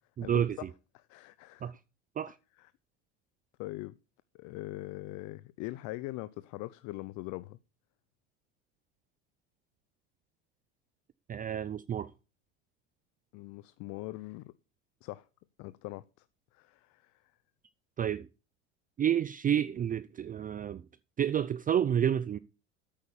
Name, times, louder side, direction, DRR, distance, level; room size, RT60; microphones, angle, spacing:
voice 1, 0.2-0.7 1.6-1.8 2.2-2.4 11.3-12.1 18.0-18.3 19.0-20.8 21.2-22.4, right 9 dB, 25° right, 0.5 m, -29 dB
voice 2, 0.9-1.7 2.6-2.7 3.6-4.0 4.4-7.6 13.3-14.5 15.0-15.3 15.6-16.2 16.5-17.2, left 19 dB, 55° left, 0.7 m, -42 dB
8.9 x 8.8 x 7.0 m
hypercardioid pair, 95°, 34 cm